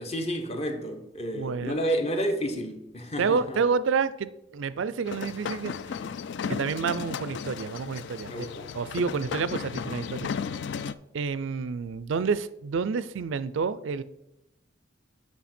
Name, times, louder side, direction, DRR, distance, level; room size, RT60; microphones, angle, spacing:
voice 1, 0.0-3.6 8.3-8.7, equal, 30° left, 0.9 m, -30 dB
voice 2, 1.4-1.8 3.2-5.7 6.5-8.5 8.7-10.3 11.1-14.0, right 5 dB, 65° right, 0.4 m, -29 dB
sound 1, 5.1-10.9, left 6 dB, 55° left, 0.3 m, -35 dB
8.3 x 5.8 x 4.3 m
head